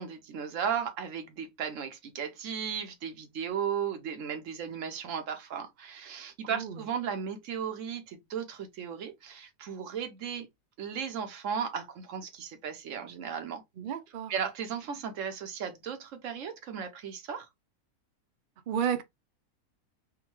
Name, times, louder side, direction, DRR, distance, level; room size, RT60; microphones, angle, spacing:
voice 1, 0.0-10.5 10.8-13.6 14.3-17.5, right 7 dB, 65° right, 1.0 m, -35 dB
voice 2, 13.8-14.3 18.7-19.0, right 8 dB, 80° right, 0.4 m, -32 dB
3.5 x 2.2 x 3.0 m
omnidirectional pair, 1.6 m